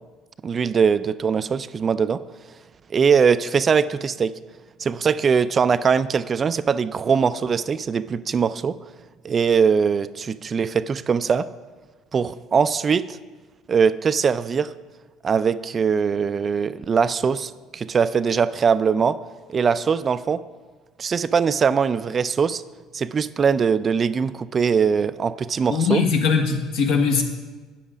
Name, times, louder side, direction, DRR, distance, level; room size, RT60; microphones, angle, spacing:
voice 1, 0.4-2.2 2.9-4.3 4.8-8.8 9.2-11.5 12.1-13.2 13.7-14.7 15.2-19.2 19.5-20.4 21.0-22.6 22.9-26.0, right 6 dB, 35° right, 14 dB, 0.3 m, -21 dB
voice 2, 25.7-27.2, left 5 dB, 75° left, 3 dB, 1.4 m, -20 dB
9.1 x 7.2 x 5.0 m, 1.4 s
supercardioid pair, 90°, 0 cm